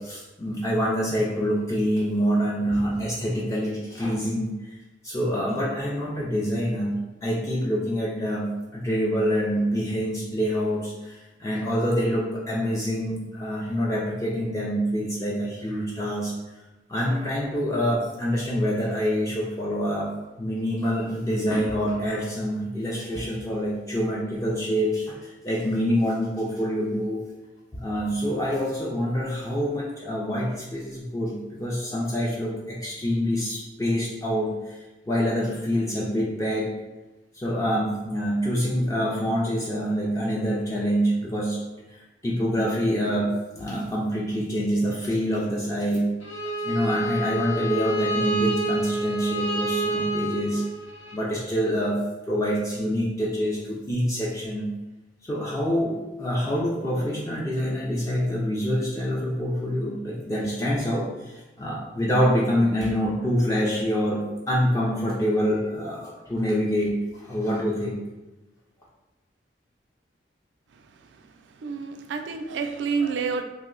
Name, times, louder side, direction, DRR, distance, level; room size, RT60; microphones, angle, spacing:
voice 1, 0.0-4.7 5.0-6.9 7.2-16.3 16.9-20.1 20.4-27.2 27.7-34.8 35.1-36.7 37.3-41.6 41.9-46.1 46.6-50.6 51.1-52.0 52.3-54.7 55.2-68.0, equal, 20° left, -5 dB, 0.3 m, -26 dB
Bowed string instrument, 46.2-51.2, right 2 dB, 90° left, 0.5 m, -28 dB
voice 2, 71.6-73.4, right 5 dB, 85° right, 6 dB, 0.3 m, -28 dB
2.6 x 2.0 x 3.7 m, 1.1 s
head